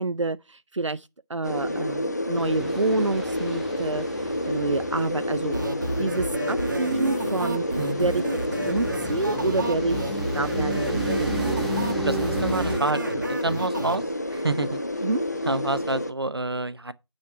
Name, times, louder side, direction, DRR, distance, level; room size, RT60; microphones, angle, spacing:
voice 1, 0.0-5.5 6.0-7.6 8.0-8.2 8.7-11.4 15.0-15.2, right 3 dB, 85° right, 0.5 m, -28 dB
sound 1, 1.4-16.1, left 1 dB, 35° left, 0.7 m, -29 dB
sound 2, 2.3-12.8, right 1 dB, ahead, 0.4 m, -35 dB
Wonderful World, 5.5-14.0, right 1 dB, 40° right, 1.5 m, -31 dB
voice 2, 7.8-8.1 12.0-14.8 15.5-16.9, right 2 dB, 55° right, 0.8 m, -28 dB
9.4 x 4.4 x 5.8 m
figure-of-eight pair, 170°, 15 cm